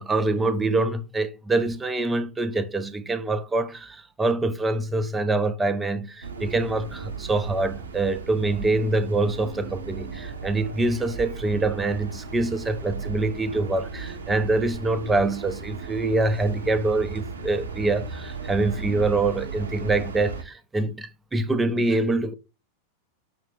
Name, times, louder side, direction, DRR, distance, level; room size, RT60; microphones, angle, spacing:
voice 1, 0.0-22.3, right 2 dB, 10° right, 0.5 m, -25 dB
sound 1, 6.2-20.4, right 5 dB, 70° right, 0.7 m, -36 dB
5.8 x 2.4 x 3.6 m
figure-of-eight pair, 90°, 0 cm